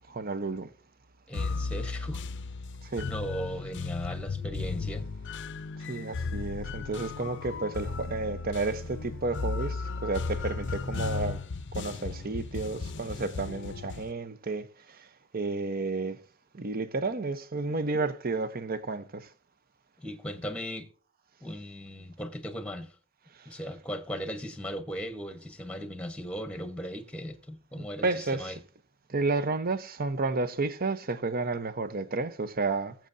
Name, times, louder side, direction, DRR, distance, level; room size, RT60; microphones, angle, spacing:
voice 1, 0.1-0.7 2.8-3.1 5.9-11.4 11.7-15.1 15.3-16.2 16.5-19.3 23.4-23.5 27.8-28.6 29.1-32.9, right 3 dB, 45° right, 0.8 m, -31 dB
sound 1, 1.3-14.1, left 4 dB, 60° left, 0.6 m, -35 dB
voice 2, 1.3-2.2 3.0-5.1 20.0-20.9 21.4-22.9 23.4-28.6, equal, 5° left, 1.1 m, -37 dB
21.0 x 7.5 x 2.6 m
head